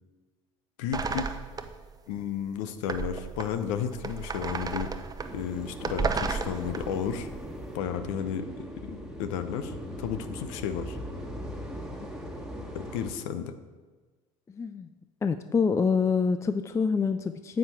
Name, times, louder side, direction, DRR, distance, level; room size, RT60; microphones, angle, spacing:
voice 1, 0.8-1.3 2.1-4.9 5.3-7.3 7.7-11.0 12.7-13.5, left 8 dB, 65° left, 10 dB, 0.7 m, -33 dB
sound 1, 0.9-1.9 2.2-2.3 2.9-7.4, right 4 dB, 20° right, 0.7 m, -33 dB
sound 2, 5.2-13.1, equal, 5° right, 1.5 m, -39 dB
voice 2, 11.7-12.1 14.6-14.9 15.2-17.6, left 5 dB, 15° left, 10 dB, 0.3 m, -26 dB
9.3 x 7.2 x 4.5 m, 1.3 s
hypercardioid pair, 70°, 18 cm